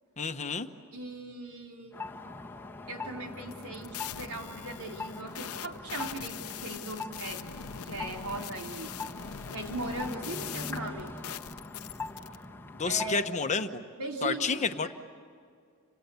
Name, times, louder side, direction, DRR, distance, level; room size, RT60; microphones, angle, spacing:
voice 1, 0.2-0.7 12.8-13.8 14.2-14.9, left 4 dB, 35° left, 7 dB, 1.1 m, -30 dB
voice 2, 0.9-2.0 2.9-7.4 7.8-8.9 9.5-11.1 12.8-13.3 14.0-14.9, right 2 dB, 85° right, 1 dB, 3.7 m, -39 dB
sound 1, 1.9-13.3, left 3 dB, 10° left, 1.4 m, -42 dB
sound 2, 3.4-12.4, left 9 dB, 85° left, 0.7 m, -42 dB
30.0 x 26.5 x 7.1 m, 2.2 s
head